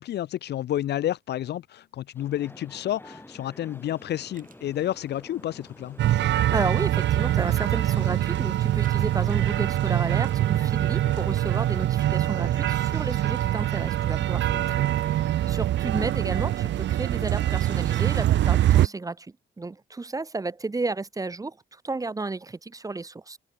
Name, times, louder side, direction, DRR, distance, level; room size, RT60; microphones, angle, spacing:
voice 1, 0.0-6.0 14.5-14.7, left 12 dB, 60° left, 0.5 m, -30 dB
sound 1, 2.1-15.7, left 1 dB, 10° left, 4.1 m, -49 dB
sound 2, 3.7-11.5, right 6 dB, 45° right, 7.7 m, -63 dB
sound 3, 6.0-18.9, right 13 dB, 65° right, 0.6 m, -24 dB
voice 2, 6.5-23.4, right 3 dB, 15° right, 0.7 m, -32 dB
cardioid pair, 90°, 20 cm